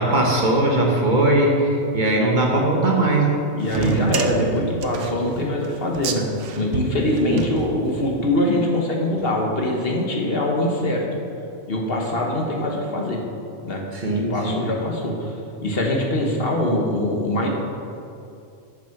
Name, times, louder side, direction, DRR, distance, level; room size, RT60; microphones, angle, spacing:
voice 1, 0.0-3.4 7.3-7.4 13.9-14.7, right 1 dB, 40° right, 0 dB, 1.2 m, -19 dB
voice 2, 3.5-6.3 6.6-11.0 11.7-13.2 13.6-13.8 14.2-15.3 15.6-17.5, left 1 dB, 55° left, 0 dB, 1.3 m, -23 dB
sound 1, 3.6-8.2, right 6 dB, 80° right, 1.0 m, -29 dB
9.2 x 6.1 x 5.8 m, 2.5 s
omnidirectional pair, 1.2 m